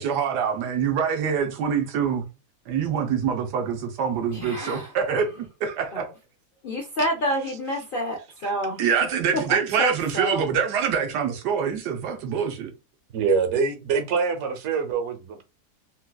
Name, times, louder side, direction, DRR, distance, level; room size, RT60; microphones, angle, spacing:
voice 1, 0.0-2.2 2.7-5.3 5.6-6.1 8.8-12.7, right 7 dB, 90° right, 1.3 m, -25 dB
voice 2, 4.3-4.9 5.9-6.0 6.6-8.8 9.3-10.4, equal, 85° left, 0.4 m, -28 dB
voice 3, 13.1-15.5, right 5 dB, 55° right, 0.9 m, -24 dB
4.0 x 2.3 x 2.2 m
omnidirectional pair, 1.7 m